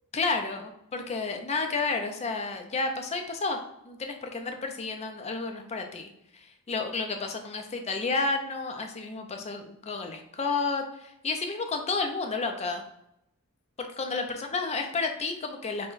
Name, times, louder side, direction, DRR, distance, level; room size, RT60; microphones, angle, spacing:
voice 1, 0.1-3.6 3.8-6.1 6.7-12.8 13.8-15.9, left 3 dB, 30° left, 4 dB, 0.4 m, -31 dB
5.5 x 2.2 x 2.5 m, 0.80 s
head